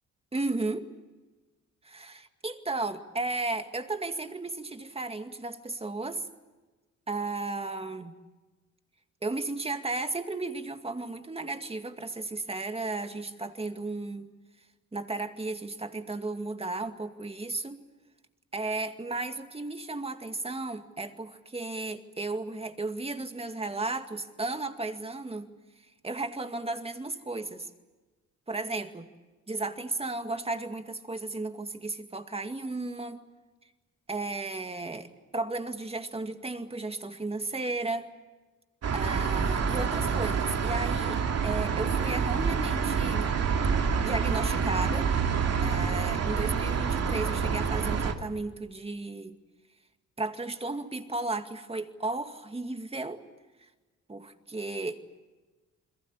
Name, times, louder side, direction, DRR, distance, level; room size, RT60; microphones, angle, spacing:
voice 1, 0.3-0.9 1.9-6.3 7.1-8.2 9.2-14.3 14.9-17.8 18.5-25.5 26.0-27.7 28.5-29.1 29.5-33.2 34.1-38.1 38.9-43.3 44.0-45.1 45.6-49.4 50.2-53.2 54.1-55.1, right 2 dB, 20° right, 7 dB, 2.2 m, -34 dB
sound 1, 38.8-48.1, right 6 dB, 55° right, 2.7 m, -27 dB
29.0 x 22.5 x 8.6 m, 1.2 s
cardioid pair, 90°, 30 cm